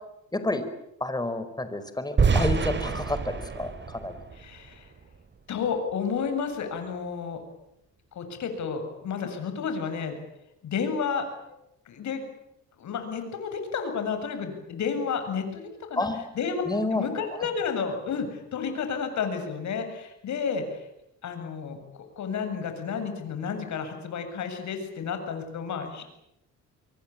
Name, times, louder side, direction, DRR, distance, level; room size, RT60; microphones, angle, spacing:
voice 1, 0.3-0.6 1.0-4.1 16.0-16.2 16.6-17.0 17.3-17.5, left 2 dB, 15° left, 10 dB, 4.9 m, -29 dB
sound 1, 2.2-5.1, right 5 dB, 40° right, 3.1 m, -27 dB
voice 2, 4.3-4.9 5.5-7.4 8.1-10.2 10.6-11.6 11.9-12.2 12.8-15.6 15.9-16.1 16.3-16.6 16.9-20.9 21.2-21.8 22.2-26.0, left 6 dB, 70° left, 7 dB, 7.6 m, -31 dB
26.0 x 23.5 x 8.8 m, 0.82 s
cardioid pair, 90°, 30 cm